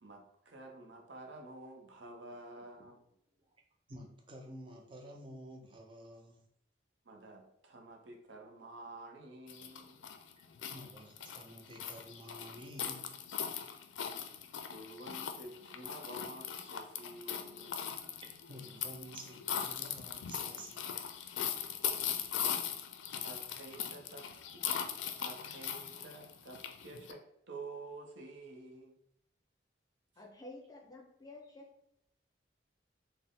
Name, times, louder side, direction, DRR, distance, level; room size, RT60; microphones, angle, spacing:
voice 1, 0.0-3.0 7.0-10.0 14.6-18.0 22.4-22.5 23.2-24.3 24.5-24.6 25.2-28.9, right 2 dB, 75° right, 3 dB, 0.7 m, -50 dB
voice 2, 3.9-6.4 10.4-10.5 10.7-13.1 16.2-16.3 17.2-17.7 18.2-21.0 21.7-21.9, equal, 25° right, 3 dB, 0.5 m, -51 dB
sound 1, 9.5-27.1, left 8 dB, 80° left, 0.4 m, -40 dB
voice 3, 30.2-31.7, left 2 dB, 20° left, 0 dB, 0.6 m, -51 dB
4.1 x 2.0 x 3.6 m, 0.75 s
head